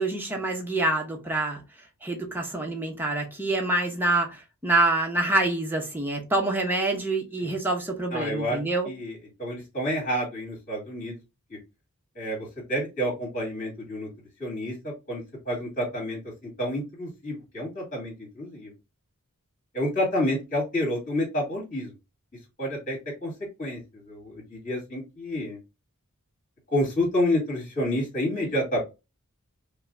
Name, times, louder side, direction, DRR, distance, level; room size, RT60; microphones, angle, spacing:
voice 1, 0.0-1.6 2.0-8.9, right 2 dB, 10° right, 0.9 m, -26 dB
voice 2, 8.1-8.6 8.8-11.1 11.5-11.6 12.1-14.1 14.4-18.7 19.7-21.9 22.6-23.3 23.6-25.6 26.7-28.8, left 1 dB, 35° left, 2.2 m, -29 dB
5.2 x 2.2 x 2.6 m
head